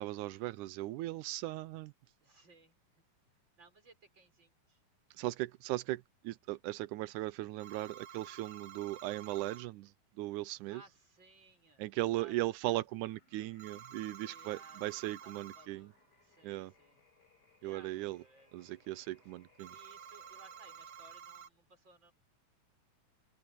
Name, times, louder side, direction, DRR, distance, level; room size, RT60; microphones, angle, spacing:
voice 1, 0.0-1.9 5.2-10.8 11.8-15.9 16.4-16.7 17.6-18.2 18.5-19.8, right 17 dB, 80° right, 1.8 m, -38 dB
voice 2, 2.2-3.0 3.6-4.8 10.7-12.3 14.2-15.9 16.2-17.0 17.6-18.5 19.7-22.1, right 3 dB, 30° right, 5.8 m, -61 dB
sound 1, 7.6-9.7 13.6-15.7 19.6-21.5, right 8 dB, 50° right, 2.8 m, -51 dB
sound 2, 13.0-21.4, left 3 dB, 25° left, 6.2 m, -68 dB
open air
omnidirectional pair, 4.1 m